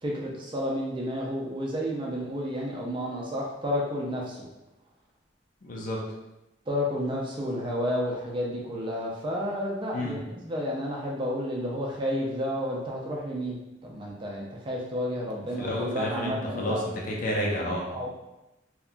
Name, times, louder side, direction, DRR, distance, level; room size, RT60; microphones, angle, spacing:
voice 1, 0.0-4.5 6.7-16.8 17.9-18.1, equal, 25° right, -2 dB, 0.4 m, -31 dB
voice 2, 5.6-6.0 9.9-10.2 15.6-16.8 17.1-17.9, left 1 dB, 45° left, -2 dB, 0.5 m, -30 dB
2.8 x 2.3 x 2.4 m, 0.96 s
head